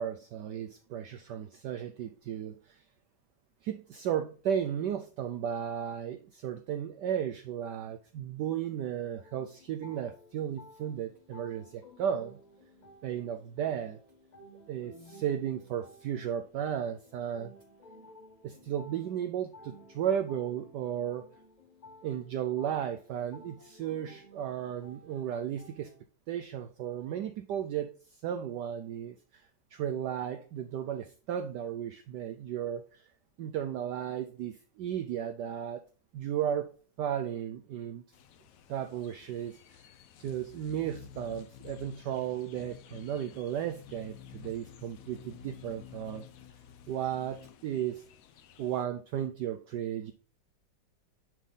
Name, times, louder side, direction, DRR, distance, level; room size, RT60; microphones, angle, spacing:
voice 1, 0.0-2.8 3.6-12.4 13.0-14.0 14.7-17.5 18.4-21.2 22.0-25.9 26.3-27.9 28.2-29.4 29.7-33.1 33.4-35.8 36.1-36.7 37.0-38.0 38.7-39.6 40.2-46.3 46.9-48.1 48.6-50.1, right 9 dB, 70° right, 8 dB, 1.1 m, -34 dB
sound 1, 9.2-26.0, left 1 dB, 30° left, 0.9 m, -55 dB
sound 2, 38.1-48.8, left 9 dB, 80° left, 0.7 m, -52 dB
10.0 x 3.7 x 3.9 m, 0.39 s
omnidirectional pair, 2.2 m